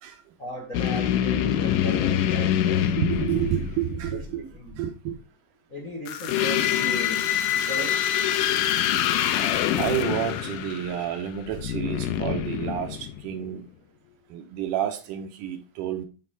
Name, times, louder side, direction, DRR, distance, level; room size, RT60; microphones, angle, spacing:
voice 1, 0.4-2.9 4.3-4.8 5.7-7.2 7.5-7.9 14.1-14.2, right 1 dB, 50° left, 0.9 m, -37 dB
sound 1, 0.7-4.0 6.1-13.4, left 11 dB, 90° left, 2.2 m, -25 dB
voice 2, 3.0-4.4 4.8-5.2 9.8-13.7 14.3-16.1, right 9 dB, 90° right, 2.5 m, -29 dB
7.1 x 4.4 x 4.1 m
omnidirectional pair, 3.6 m